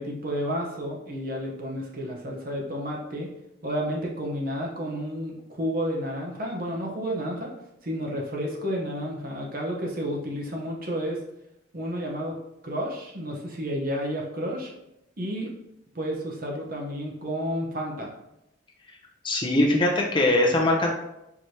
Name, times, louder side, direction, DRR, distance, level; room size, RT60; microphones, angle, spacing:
voice 1, 0.0-3.3 3.6-7.5 7.8-11.2 11.7-12.4 12.6-14.7 15.2-15.5 15.9-18.1, equal, 50° right, -1 dB, 0.8 m, -31 dB
voice 2, 19.2-20.9, left 1 dB, 25° left, -1 dB, 0.6 m, -21 dB
4.7 x 3.2 x 2.7 m, 0.85 s
head